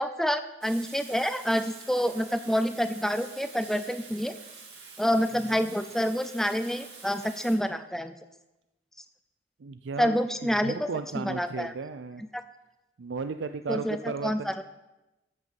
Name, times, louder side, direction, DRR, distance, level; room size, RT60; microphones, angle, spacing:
voice 1, 0.0-4.3 5.0-8.1 10.0-10.9 11.1-11.7 13.7-14.0 14.2-14.6, equal, ahead, 10 dB, 0.5 m, -27 dB
Water tap faucet / Sink (filling or washing), 0.6-7.6, right 5 dB, 65° right, 2.7 m, -47 dB
voice 2, 5.3-5.7 9.6-12.2 13.0-14.6, right 4 dB, 80° right, 9 dB, 0.5 m, -35 dB
13.0 x 6.4 x 7.0 m, 1.0 s
head